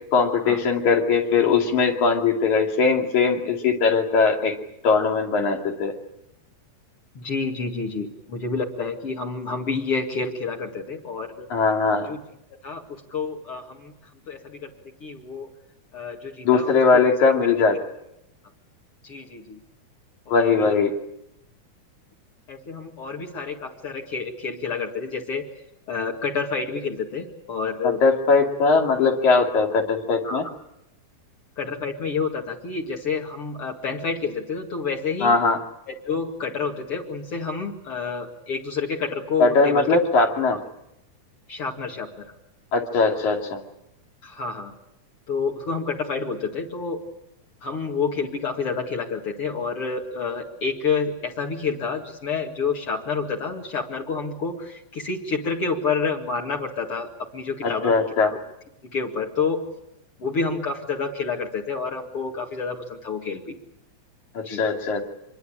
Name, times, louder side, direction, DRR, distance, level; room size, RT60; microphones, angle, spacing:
voice 1, 0.1-4.6 4.8-5.9 11.5-12.1 16.4-17.8 20.3-20.9 27.8-30.5 35.2-35.6 39.4-40.6 42.7-43.6 57.6-58.3 64.4-65.1, left 4 dB, 75° left, 3 dB, 3.8 m, -20 dB
voice 2, 7.1-11.5 12.1-12.2 12.6-13.9 14.3-14.7 15.0-15.5 15.9-17.0 19.0-19.6 20.3-20.8 22.5-25.4 25.9-28.0 30.2-30.4 31.6-35.4 35.9-39.9 40.5-40.6 41.5-42.2 44.2-44.7 45.3-47.0 47.6-58.4 58.9-59.6 60.2-63.5 64.4-64.6, left 5 dB, 50° left, 0 dB, 2.9 m, -29 dB
25.5 x 22.0 x 8.7 m, 0.85 s
omnidirectional pair, 3.5 m